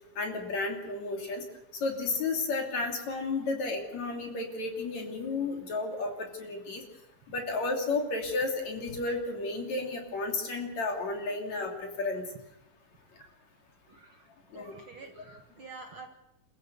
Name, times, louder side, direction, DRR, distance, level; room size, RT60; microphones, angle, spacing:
voice 1, 0.2-1.4 1.8-6.8 7.3-12.2 14.5-14.8 15.0-15.2, left 3 dB, 55° left, 2 dB, 4.2 m, -32 dB
voice 2, 13.9-14.3 14.5-16.1, right 4 dB, 50° right, 3 dB, 1.9 m, -48 dB
29.0 x 15.0 x 7.0 m, 0.87 s
omnidirectional pair, 3.8 m